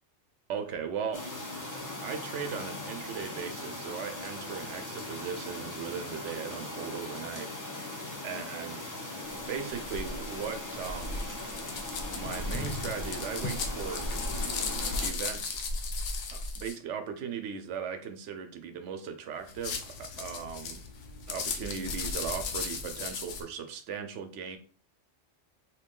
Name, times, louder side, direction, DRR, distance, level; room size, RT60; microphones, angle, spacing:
voice 1, 0.5-1.2 2.0-7.5 8.2-8.8 9.5-11.4 12.1-14.1 15.0-15.6 16.3-20.8 21.3-24.6, right 7 dB, 80° right, 7 dB, 0.9 m, -38 dB
sound 1, 1.1-15.1, left 2 dB, 20° left, 0.5 m, -39 dB
sound 2, 9.3-16.8 19.4-23.4, left 3 dB, 90° left, 1.0 m, -36 dB
3.0 x 2.8 x 3.6 m, 0.40 s
omnidirectional pair, 1.2 m